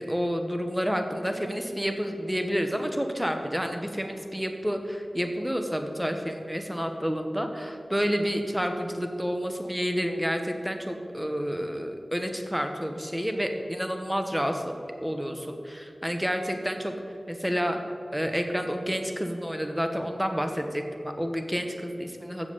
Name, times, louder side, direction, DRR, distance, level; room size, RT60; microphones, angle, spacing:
voice 1, 0.0-14.6 15.0-16.9 17.3-17.8 18.1-22.5, equal, 5° right, 5 dB, 1.1 m, -29 dB
7.5 x 6.9 x 6.9 m, 2.6 s
wide cardioid pair, 50°, 0 cm